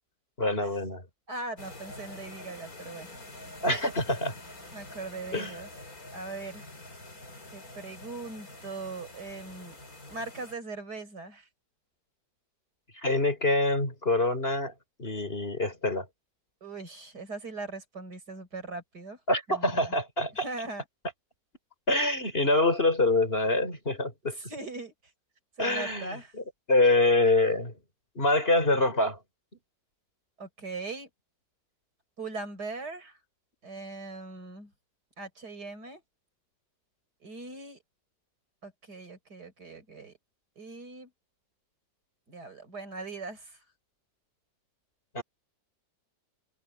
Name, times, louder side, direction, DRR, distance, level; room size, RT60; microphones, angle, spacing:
voice 1, 0.4-1.0 3.6-4.3 5.3-5.6 12.9-14.7 15.0-16.1 19.3-20.5 21.9-24.4 25.6-27.7 28.2-29.2 45.1-45.2, left 2 dB, 30° left, 4.0 m, -25 dB
voice 2, 1.3-3.1 4.7-5.7 6.1-6.7 7.5-9.8 10.1-11.5 16.6-19.2 19.5-19.9 20.4-20.8 24.4-24.9 25.6-26.3 30.4-31.1 32.2-33.2 33.6-34.7 35.2-36.0 37.2-37.8 38.6-40.2 40.6-41.1 42.3-43.6, right 3 dB, 60° right, 5.8 m, -40 dB
sound 1, 1.6-10.5, left 1 dB, 50° left, 4.6 m, -46 dB
omnidirectional pair, 1.9 m